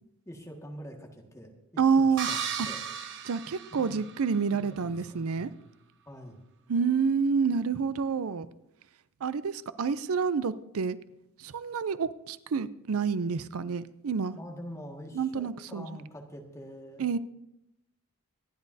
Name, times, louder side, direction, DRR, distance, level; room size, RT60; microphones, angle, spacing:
voice 1, 0.3-2.4 2.6-2.8 3.7-4.0 4.5-5.6 6.1-6.4 14.3-17.1, equal, 15° left, 1.8 m, -45 dB
voice 2, 1.8-2.3 2.6-2.7 3.2-5.5 6.7-8.5 9.2-11.0 11.4-14.4 15.1-15.9 17.0-17.2, right 5 dB, 70° right, 0.5 m, -28 dB
sound 1, 2.2-4.4, right 7 dB, 55° right, 1.1 m, -35 dB
26.0 x 10.5 x 2.7 m
head